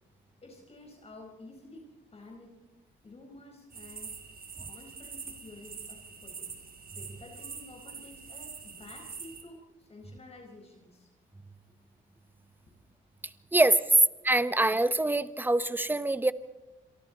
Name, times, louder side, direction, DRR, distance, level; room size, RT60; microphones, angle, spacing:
voice 1, 0.4-2.6 3.0-4.2 4.6-6.5 6.9-11.1, left 2 dB, 30° left, 2 dB, 4.5 m, -51 dB
sound 1, 3.7-9.4, right 5 dB, 50° right, 3.8 m, -44 dB
voice 2, 14.2-16.3, right 2 dB, 10° right, 13 dB, 1.0 m, -25 dB
27.5 x 23.5 x 4.1 m, 0.98 s
cardioid pair, 90°, 20 cm